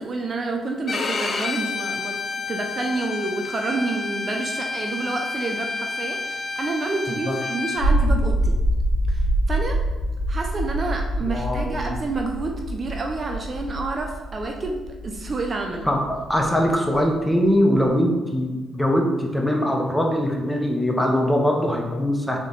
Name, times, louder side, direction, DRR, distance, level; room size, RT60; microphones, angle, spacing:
voice 1, 0.0-2.2 2.5-8.6 9.1-9.8 10.3-15.9, right 3 dB, 40° right, 2 dB, 0.5 m, -29 dB
Bowed string instrument, 0.9-7.8, left 4 dB, 40° left, 0.4 m, -29 dB
sound 1, 7.8-17.9, right 1 dB, 80° left, 1.2 m, -25 dB
voice 2, 11.2-11.9 15.8-22.4, equal, 5° left, 0 dB, 0.8 m, -22 dB
3.8 x 3.6 x 3.8 m, 1.2 s
cardioid pair, 90°, 0 cm